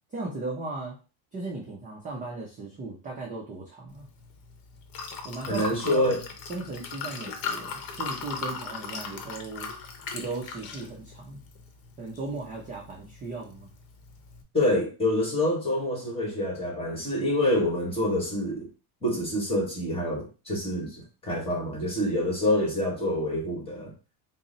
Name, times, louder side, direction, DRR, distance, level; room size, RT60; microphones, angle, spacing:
voice 1, 0.1-1.0 1.3-4.1 5.2-6.1 6.5-9.7 10.1-11.4 12.0-13.7, right 3 dB, 20° right, -2 dB, 0.4 m, -37 dB
Liquid, 3.9-14.4, left 4 dB, 50° left, 0.8 m, -39 dB
voice 2, 5.5-6.2 14.5-18.7 19.0-23.9, left 1 dB, 10° left, -2 dB, 1.2 m, -27 dB
3.8 x 2.0 x 3.8 m, 0.33 s
cardioid pair, 170°, 47 cm